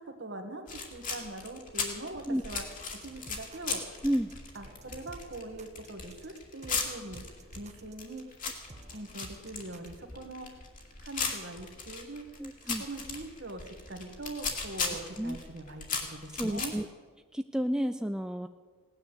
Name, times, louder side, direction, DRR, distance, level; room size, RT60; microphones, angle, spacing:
voice 1, 0.0-2.6 2.9-3.9 4.5-7.2 7.5-8.3 8.9-10.6 11.0-12.3 12.6-16.7, right 2 dB, 55° right, 6 dB, 1.8 m, -42 dB
sound 1, 0.7-16.7, left 5 dB, 40° left, 2.3 m, -37 dB
sound 2, 2.5-10.0, right 2 dB, 35° right, 1.0 m, -53 dB
voice 2, 12.4-12.8 15.2-15.4 16.3-16.9 17.3-18.5, equal, 5° right, 7 dB, 0.4 m, -31 dB
17.5 x 9.8 x 8.1 m, 1.5 s
head